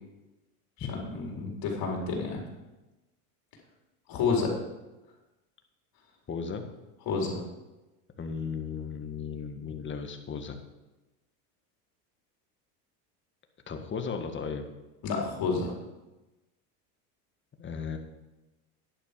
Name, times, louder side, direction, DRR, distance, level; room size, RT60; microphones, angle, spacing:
voice 1, 0.8-2.4 4.1-4.5 7.1-7.4 15.0-15.7, left 4 dB, 50° left, -1 dB, 4.4 m, -29 dB
voice 2, 6.3-6.6 8.2-10.6 13.7-14.6 17.6-18.0, left 6 dB, 25° left, 5 dB, 1.7 m, -35 dB
11.0 x 10.5 x 5.3 m, 1.1 s
supercardioid pair, 105°, 45 cm